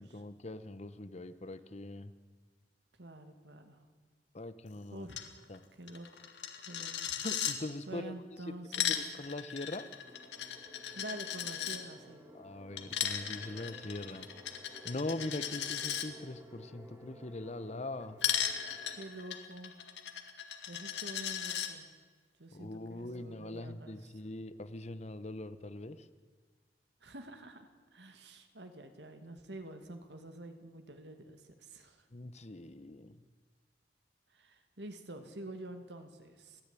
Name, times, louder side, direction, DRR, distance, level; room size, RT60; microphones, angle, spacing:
voice 1, 0.0-2.1 4.3-5.1 5.5-5.6 7.2-8.1 8.5-8.6 8.9-9.9 12.3-14.3 14.8-18.2 22.5-26.1 32.1-33.2, left 2 dB, 40° left, 13 dB, 1.0 m, -42 dB
voice 2, 3.0-3.8 4.9-5.3 5.8-6.3 6.7-7.1 7.9-9.0 10.9-12.3 18.9-19.7 20.7-21.9 22.4-24.1 27.0-32.0 34.3-36.6, right 1 dB, 80° right, 7 dB, 2.4 m, -48 dB
Coin (dropping), 5.1-5.3 5.5-5.6 5.9-7.6 8.5-11.8 12.8-16.1 18.2-21.7, left 9 dB, 85° left, 1.9 m, -36 dB
sound 1, 10.0-19.0, equal, 15° right, 3.4 m, -55 dB
29.0 x 10.5 x 9.9 m, 1.4 s
head